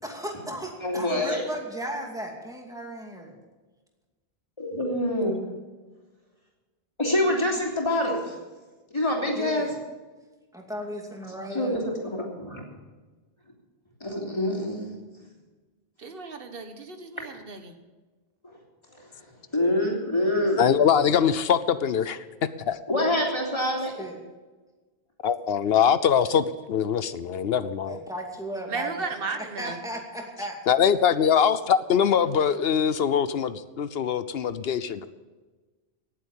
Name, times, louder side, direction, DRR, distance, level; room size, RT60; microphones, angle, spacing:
voice 1, 0.0-3.3 9.3-9.7 10.5-11.8 23.9-24.2 27.9-29.1 29.4-30.6, right 1 dB, 5° right, 0 dB, 2.4 m, -35 dB
voice 2, 0.8-1.4 4.6-5.4 7.0-8.4 8.9-9.7 11.5-12.6 14.0-14.9 18.4-18.6 18.9-19.1 19.5-20.8 22.9-23.9, left 1 dB, 25° left, -2 dB, 3.3 m, -26 dB
voice 3, 16.0-17.7 28.7-29.8, right 4 dB, 65° right, 7 dB, 1.5 m, -34 dB
voice 4, 20.6-22.2 22.7-22.8 25.2-28.0 30.7-35.1, left 8 dB, 75° left, 14 dB, 0.9 m, -23 dB
18.0 x 7.9 x 7.2 m, 1.3 s
omnidirectional pair, 1.0 m